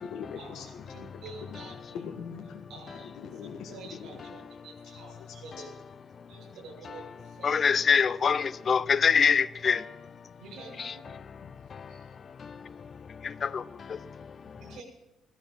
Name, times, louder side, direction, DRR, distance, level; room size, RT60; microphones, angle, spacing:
voice 1, 0.0-1.6 1.9-2.7 3.1-4.3 5.1-5.3 11.4-11.5, left 6 dB, 80° left, 1.8 m, -42 dB
voice 2, 0.9-1.7 2.7-3.1 3.7-5.7 6.3-7.6 10.4-11.2 11.9-12.1 14.6-14.8, right 4 dB, 75° right, 7.3 m, -47 dB
voice 3, 7.4-9.8 10.8-10.9 13.4-13.6, left 6 dB, 40° left, 0.6 m, -23 dB
16.0 x 13.5 x 5.7 m
cardioid pair, 110°, 0 cm